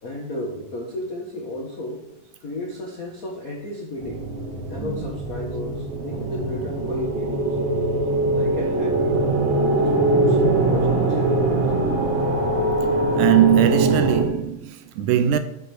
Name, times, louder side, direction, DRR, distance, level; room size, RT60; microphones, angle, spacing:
voice 1, 0.0-2.0 2.4-4.3 4.7-7.6 8.3-9.2 9.7-11.6, left 1 dB, 70° left, 0.8 m, -33 dB
sound 1, 4.0-14.2, right 2 dB, 50° right, 1.7 m, -22 dB
voice 2, 13.2-15.4, right 11 dB, 80° right, 1.9 m, -20 dB
7.9 x 6.4 x 6.4 m
omnidirectional pair, 3.8 m